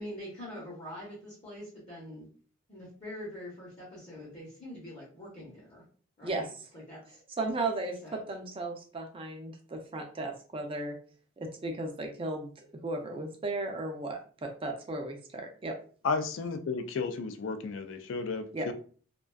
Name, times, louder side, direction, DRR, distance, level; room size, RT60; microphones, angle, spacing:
voice 1, 0.0-2.3 2.7-5.8 6.2-6.5 6.7-7.2 8.0-8.2, left 1 dB, 35° left, -6 dB, 0.8 m, -44 dB
voice 2, 6.2-6.7 7.4-11.0 11.4-15.8 18.5-18.7, right 2 dB, 25° right, 4 dB, 0.4 m, -35 dB
voice 3, 16.0-18.7, left 4 dB, 65° left, 8 dB, 0.3 m, -33 dB
2.4 x 2.2 x 2.2 m, 0.43 s
head